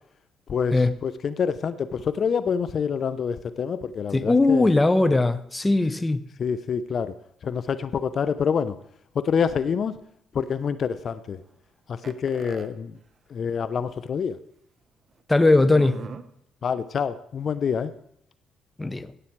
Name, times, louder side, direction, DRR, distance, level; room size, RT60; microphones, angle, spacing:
voice 1, 0.5-4.7 6.4-7.1 7.4-8.8 9.1-10.0 10.3-11.4 11.9-13.0 13.3-14.4 16.6-17.9, left 6 dB, 55° left, 13 dB, 0.7 m, -27 dB
voice 2, 4.1-6.2 15.3-16.0 18.8-19.1, left 2 dB, 20° left, 13 dB, 0.9 m, -19 dB
sound 1, 12.0-12.7 13.6-13.7 14.0-14.1 15.6-16.2, right 5 dB, 45° right, 1.1 m, -39 dB
17.0 x 8.5 x 4.6 m, 0.73 s
supercardioid pair, 70°, 0 cm